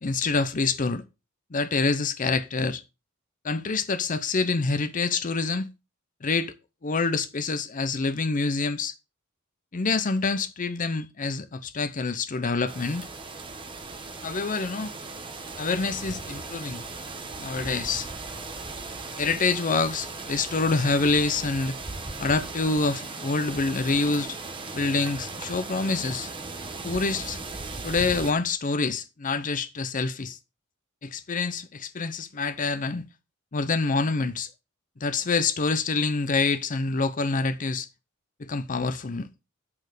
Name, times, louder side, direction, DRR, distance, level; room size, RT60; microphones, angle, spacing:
voice 1, 0.0-1.0 1.5-2.8 3.4-5.7 6.2-6.5 6.8-8.9 9.7-13.1 14.2-14.9 15.6-16.8 17.4-18.1 19.2-21.7 22.2-24.4 24.7-26.3 26.8-27.4 27.8-30.4 31.0-33.0 33.5-34.5 35.0-37.9 38.4-39.3, left 4 dB, 40° left, 0.6 m, -26 dB
sound 1, 12.7-28.3, right 3 dB, 25° right, 1.3 m, -37 dB
8.6 x 6.6 x 4.9 m
head